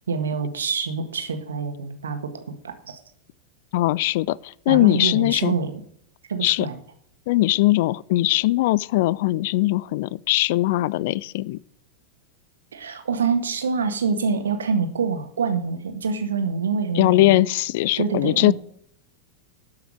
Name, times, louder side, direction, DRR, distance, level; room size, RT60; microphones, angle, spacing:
voice 1, 0.1-2.2 2.6-3.0 4.7-5.8 6.3-6.8 12.7-17.4 18.0-18.5, right 5 dB, 70° right, 1.6 m, -26 dB
voice 2, 3.7-5.6 6.4-6.7 7.3-11.6 16.9-18.5, left 17 dB, 50° left, 0.3 m, -20 dB
12.0 x 5.8 x 6.4 m
figure-of-eight pair, 90°, 0 cm